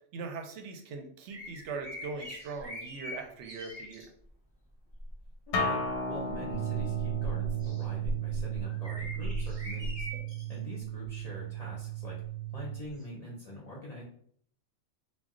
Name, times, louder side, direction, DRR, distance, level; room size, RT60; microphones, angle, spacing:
voice 1, 0.1-4.0, right 4 dB, 75° right, 3 dB, 0.9 m, -40 dB
sound 1, 1.3-4.1 4.9-5.3 5.9-10.5 11.0-11.2 13.0-13.1, equal, 25° right, 0.7 m, -39 dB
Acoustic guitar, 5.5-10.7, left 2 dB, 85° left, 0.9 m, -36 dB
voice 2, 5.5-5.8 6.1-10.1 10.5-12.2 12.5-14.0, left 1 dB, 45° left, -5 dB, 0.5 m, -44 dB
sound 2, 6.5-12.8, right 17 dB, 60° right, 0.4 m, -36 dB
2.2 x 2.2 x 3.6 m, 0.62 s
omnidirectional pair, 1.2 m